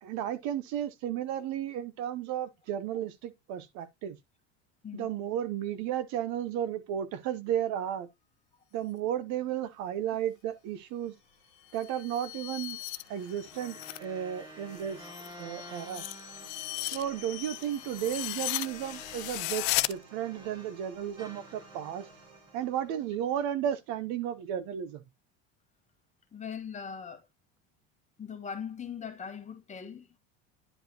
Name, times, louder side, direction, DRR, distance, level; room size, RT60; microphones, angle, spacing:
voice 1, 0.0-4.2 4.9-8.1 8.7-11.1 11.7-12.8 13.1-15.0 15.4-16.0 16.9-22.1 22.5-25.0, right 10 dB, 60° right, 0.9 m, -33 dB
sound 1, 9.8-23.6, right 3 dB, 85° right, 4.3 m, -56 dB
sound 2, 11.6-14.1 14.4-19.9, left 21 dB, 70° left, 0.5 m, -36 dB
sound 3, 13.4-20.8 21.2-23.6, right 1 dB, 10° right, 1.5 m, -52 dB
voice 2, 26.3-27.2 28.2-30.2, left 7 dB, 20° left, 1.2 m, -40 dB
10.0 x 4.7 x 2.9 m
supercardioid pair, 130°, 32 cm